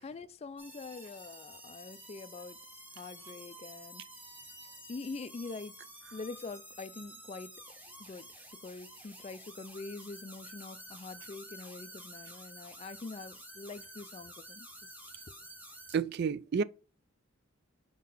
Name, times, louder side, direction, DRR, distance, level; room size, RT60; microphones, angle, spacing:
voice 1, 0.0-2.6 3.0-4.0 4.9-5.8 6.1-7.6 8.0-8.3 8.6-14.7, left 3 dB, 30° left, 0.3 m, -44 dB
sound 1, 0.6-16.0, right 1 dB, 10° right, 0.9 m, -50 dB
voice 2, 15.9-16.6, right 6 dB, 50° right, 0.3 m, -30 dB
4.7 x 3.8 x 5.5 m
head